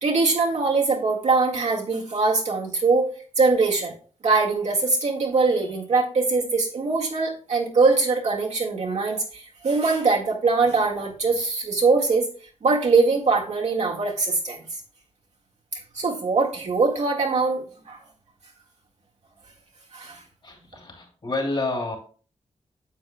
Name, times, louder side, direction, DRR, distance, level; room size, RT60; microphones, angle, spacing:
voice 1, 0.0-3.1 3.4-3.9 4.2-12.3 12.6-14.6 15.7-18.0 19.9-20.2, right 3 dB, 75° right, -2 dB, 1.9 m, -22 dB
voice 2, 20.4-22.0, left 2 dB, 45° left, 2 dB, 2.8 m, -29 dB
9.3 x 7.5 x 2.3 m, 0.41 s
wide cardioid pair, 110°, 12 cm